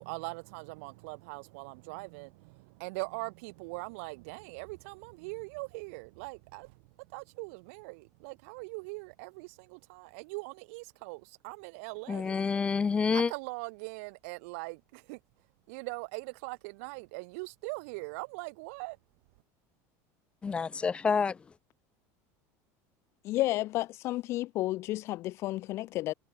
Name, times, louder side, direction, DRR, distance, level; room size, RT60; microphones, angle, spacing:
voice 1, 0.0-12.3 13.1-15.2 15.7-19.0, right 29 dB, 65° right, 3.1 m, -41 dB
voice 2, 12.1-13.3 20.4-21.4, left 5 dB, 15° left, 1.0 m, -28 dB
voice 3, 23.2-26.1, left 17 dB, 35° left, 0.4 m, -31 dB
cardioid pair, 180°, 8 cm